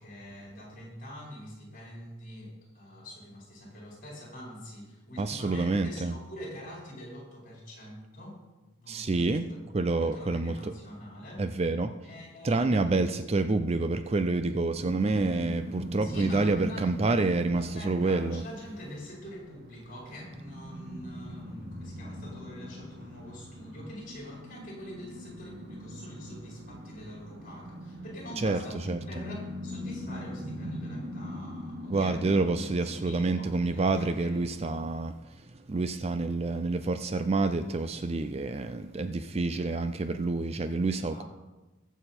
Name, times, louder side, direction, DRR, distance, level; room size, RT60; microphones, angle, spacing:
voice 1, 0.0-8.4 8.8-9.6 10.0-11.6 12.0-12.9 16.0-16.9 17.5-32.4 33.0-34.8 41.1-41.2, equal, 40° left, -3 dB, 4.6 m, -45 dB
voice 2, 5.2-6.1 8.9-10.7 11.4-11.9 12.4-18.4 28.4-28.6 28.9-29.0 31.9-35.2 35.7-41.2, right 3 dB, 30° right, 10 dB, 0.4 m, -28 dB
sound 1, 14.7-34.6, equal, 45° right, 1.9 m, -41 dB
21.5 x 7.1 x 4.4 m, 1.2 s
head